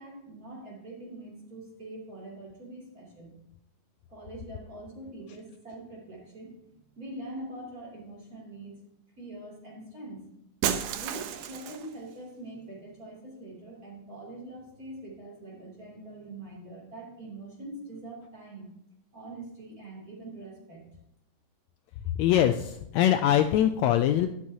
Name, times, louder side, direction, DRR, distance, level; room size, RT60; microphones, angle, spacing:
voice 1, 0.0-3.4 4.1-8.7 9.2-10.2 10.6-18.7 19.1-20.9, right 1 dB, 30° right, -3 dB, 3.1 m, -44 dB
Shatter, 10.6-12.0, right 9 dB, 80° right, 2.1 m, -31 dB
voice 2, 22.1-24.3, left 11 dB, 80° left, 8 dB, 1.7 m, -23 dB
12.0 x 11.0 x 2.8 m, 0.81 s
omnidirectional pair, 3.4 m